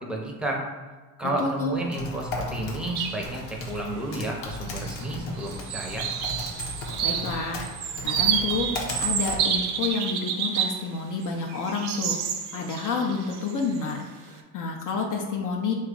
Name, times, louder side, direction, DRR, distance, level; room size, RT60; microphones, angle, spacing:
voice 1, 0.0-0.7 1.2-6.0, right 1 dB, ahead, -1 dB, 0.7 m, -31 dB
voice 2, 1.4-1.8 7.0-7.7 8.0-12.2 12.5-15.7, left 4 dB, 40° left, 0 dB, 0.5 m, -29 dB
Typing, 1.7-9.9, left 1 dB, 80° left, 0.9 m, -36 dB
sound 1, 3.0-3.2 3.6-3.7 4.7-5.1 5.4-10.8 11.2-13.9, right 8 dB, 55° right, 0.6 m, -29 dB
3.1 x 2.4 x 3.7 m, 1.3 s
supercardioid pair, 80°, 49 cm